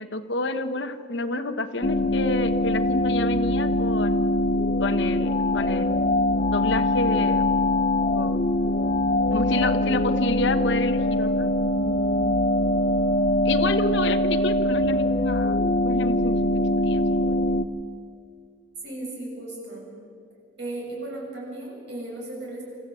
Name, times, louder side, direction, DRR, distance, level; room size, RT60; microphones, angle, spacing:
voice 1, 0.0-4.2 4.8-6.0 6.5-7.5 8.1-8.4 9.3-12.4 13.4-16.4 16.8-17.3, left 2 dB, 60° left, 10 dB, 1.0 m, -29 dB
sound 1, 1.8-17.7, left 1 dB, 40° left, 0.6 m, -23 dB
voice 2, 18.8-19.9 20.6-22.6, right 2 dB, 55° right, -3 dB, 7.4 m, -35 dB
26.5 x 14.0 x 8.4 m, 2.3 s
head